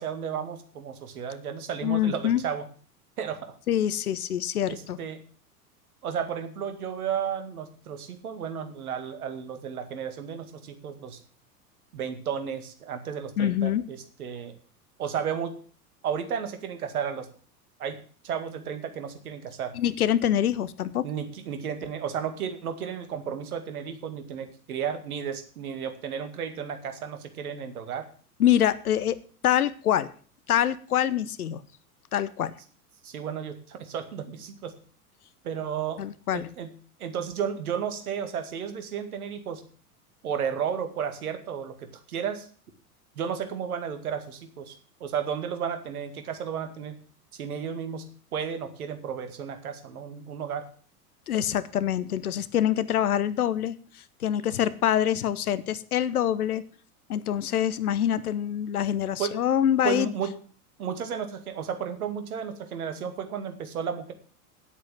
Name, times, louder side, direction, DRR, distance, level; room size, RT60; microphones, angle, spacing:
voice 1, 0.0-2.7 3.2-3.5 4.7-5.2 6.0-11.2 11.9-14.6 15.0-15.6 16.0-17.3 17.8-18.0 18.2-19.7 21.0-28.1 33.0-34.8 35.4-36.0 36.3-36.7 37.0-39.6 40.2-42.5 43.2-44.8 45.0-47.0 47.3-48.0 48.3-50.6 59.2-59.3 59.8-60.3 60.8-64.1, right 7 dB, 65° right, 8 dB, 2.2 m, -33 dB
voice 2, 1.8-2.4 3.7-5.0 13.4-13.8 19.7-21.0 28.4-29.2 29.4-30.1 30.5-31.6 32.1-32.5 36.0-36.5 51.3-53.7 54.2-56.6 57.1-60.1, left 10 dB, 70° left, 16 dB, 1.0 m, -25 dB
10.0 x 8.3 x 7.5 m, 0.43 s
figure-of-eight pair, 90°, 46 cm